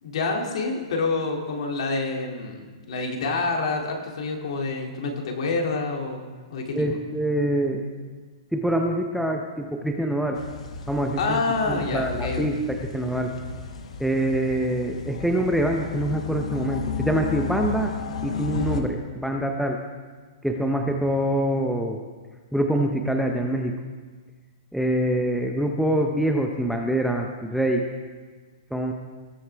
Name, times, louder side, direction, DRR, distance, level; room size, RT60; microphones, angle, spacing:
voice 1, 0.0-6.2 6.5-7.0 11.2-12.6, left 3 dB, 65° left, 1 dB, 2.4 m, -27 dB
voice 2, 6.7-7.8 8.5-10.4 10.9-13.3 14.0-17.9 18.2-19.8 20.4-22.0 22.5-23.7 24.7-27.8 28.7-28.9, right 1 dB, ahead, 2 dB, 0.6 m, -25 dB
sound 1, 10.3-18.8, left 6 dB, 80° left, 1.3 m, -33 dB
19.0 x 7.8 x 3.4 m, 1.4 s
hypercardioid pair, 150°, 3 cm